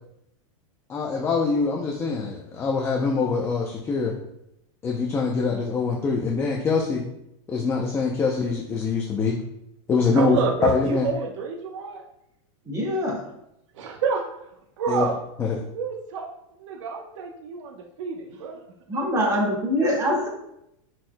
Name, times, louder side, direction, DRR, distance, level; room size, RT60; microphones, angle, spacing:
voice 1, 0.9-4.1 4.8-7.0 7.5-9.3 9.9-11.1 14.9-15.1 15.4-15.6, left 4 dB, 15° left, 0 dB, 0.5 m, -24 dB
voice 2, 10.1-12.0 13.7-14.2 14.8-15.2 15.7-16.3 16.6-18.6 18.9-19.0, right 5 dB, 65° right, 0 dB, 0.9 m, -28 dB
voice 3, 12.6-13.2 18.9-20.3, equal, 20° right, -3 dB, 1.8 m, -24 dB
9.9 x 4.5 x 2.2 m, 0.81 s
supercardioid pair, 155°, 17 cm